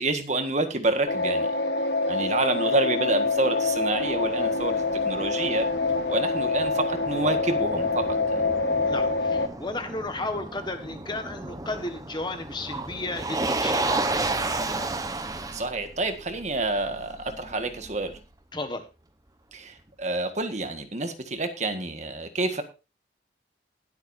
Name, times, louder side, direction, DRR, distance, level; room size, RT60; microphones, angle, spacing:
voice 1, 0.0-1.5 2.1-5.7 6.1-8.0 8.3-8.4 15.5-18.1 19.5-22.6, right 2 dB, 40° right, 7 dB, 1.6 m, -28 dB
sound 1, 1.1-9.5, left 3 dB, 70° left, 1.3 m, -26 dB
Motor vehicle (road), 3.1-18.2, right 2 dB, 20° right, 1.0 m, -33 dB
voice 2, 8.8-14.5 18.5-18.8, left 2 dB, 25° left, 7 dB, 1.5 m, -34 dB
20.5 x 8.1 x 2.7 m, 0.29 s
head